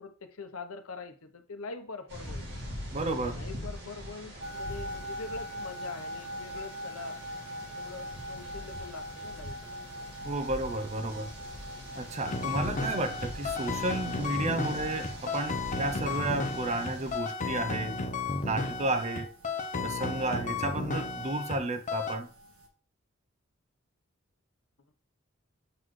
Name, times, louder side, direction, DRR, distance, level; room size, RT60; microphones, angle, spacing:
voice 1, 0.0-2.4 3.2-7.2 7.7-9.8 19.7-20.1, left 4 dB, 85° left, 0.8 m, -43 dB
sound 1, 2.1-17.2, equal, 55° right, 2.2 m, -43 dB
voice 2, 2.9-3.4 10.2-11.3 12.0-18.0 18.4-19.3 19.8-22.3, right 2 dB, 30° right, 0.5 m, -32 dB
sound 2, 4.4-22.7, equal, 90° right, 1.4 m, -44 dB
sound 3, 12.2-21.6 21.9-22.2, left 3 dB, 35° left, 0.7 m, -33 dB
7.6 x 4.0 x 3.1 m
head